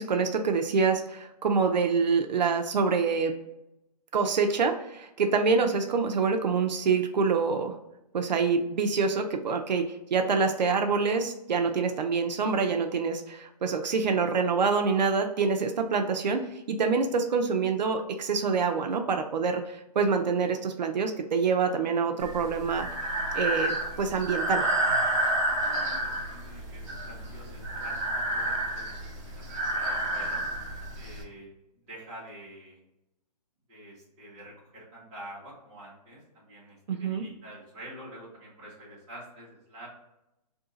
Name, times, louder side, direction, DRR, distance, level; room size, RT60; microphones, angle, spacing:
voice 1, 0.0-3.3 4.1-7.8 8.1-22.9 23.3-24.7 36.9-37.2, right 5 dB, 90° right, 5 dB, 0.5 m, -26 dB
Breathing, 22.2-31.2, right 1 dB, 50° right, 1.1 m, -30 dB
voice 2, 25.6-29.4 29.7-30.4 30.9-32.8 33.7-39.9, right 1 dB, 20° right, -9 dB, 1.4 m, -47 dB
2.8 x 2.7 x 3.8 m, 0.88 s
hypercardioid pair, 175°, 21 cm